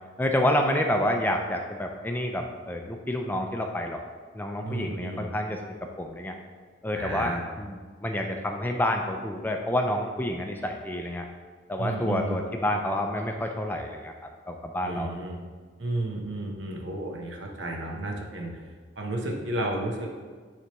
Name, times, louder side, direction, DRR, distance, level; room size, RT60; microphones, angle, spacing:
voice 1, 0.2-4.0 4.3-5.6 6.0-6.4 6.8-11.3 11.7-14.1 14.5-15.1, left 1 dB, 10° left, 3 dB, 0.4 m, -28 dB
voice 2, 4.6-5.3 6.9-7.4 11.8-12.4 14.8-15.4 15.8-18.6 19.0-20.1, right 1 dB, 75° right, 1 dB, 0.9 m, -32 dB
9.3 x 3.4 x 3.0 m, 1.5 s
head